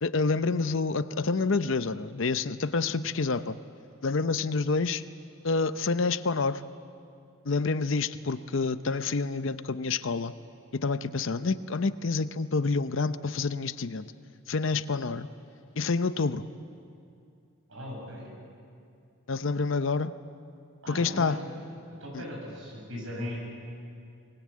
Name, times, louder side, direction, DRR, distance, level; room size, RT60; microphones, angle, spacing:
voice 1, 0.0-3.6 4.0-5.0 5.4-6.6 7.4-10.3 10.7-14.1 14.5-15.3 15.8-16.4 19.3-20.1 20.9-21.4 22.1-22.2, left 4 dB, 60° left, 12 dB, 0.7 m, -28 dB
voice 2, 17.7-18.3 20.8-21.4 22.0-23.4, left 1 dB, 65° right, -1 dB, 7.8 m, -38 dB
23.5 x 20.5 x 8.5 m, 2.5 s
head